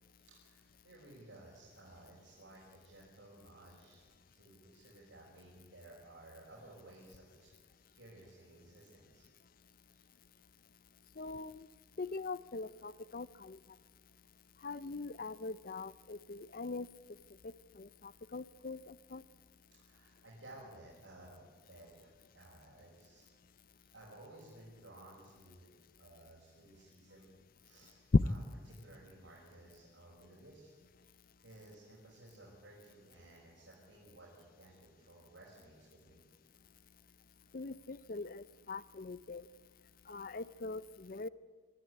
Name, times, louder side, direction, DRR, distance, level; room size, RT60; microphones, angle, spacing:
voice 1, 0.1-9.3 9.6-10.0 11.2-11.3 19.8-21.4 21.7-23.2 23.8-25.6 26.0-27.3 27.6-28.0 28.7-30.7 31.0-31.1 31.4-36.2, right 1 dB, 90° right, -5 dB, 5.7 m, -57 dB
voice 2, 11.2-11.7 12.0-13.6 14.6-16.9 17.4-19.2 28.1-28.2 37.5-39.5 40.1-41.3, left 3 dB, 50° left, 18 dB, 0.6 m, -38 dB
24.0 x 14.0 x 9.6 m, 1.5 s
head